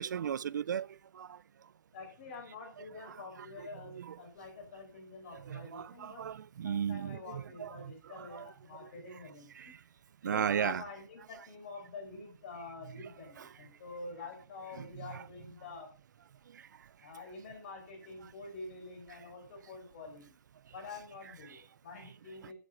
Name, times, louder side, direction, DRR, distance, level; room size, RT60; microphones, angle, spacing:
voice 1, 0.0-1.4 2.8-3.7 3.9-4.2 5.3-8.5 8.8-9.2 9.5-9.8 10.2-10.8 13.4-13.5 14.8-15.2 16.5-16.6 18.2-18.3 21.4-21.6 22.4-22.5, right 8 dB, 60° right, 0.4 m, -37 dB
voice 2, 1.9-6.3 6.6-9.8 10.2-15.9 17.0-20.3 20.7-22.5, left 3 dB, 35° left, 5.4 m, -47 dB
12.5 x 8.3 x 4.0 m
hypercardioid pair, 180°, 11 cm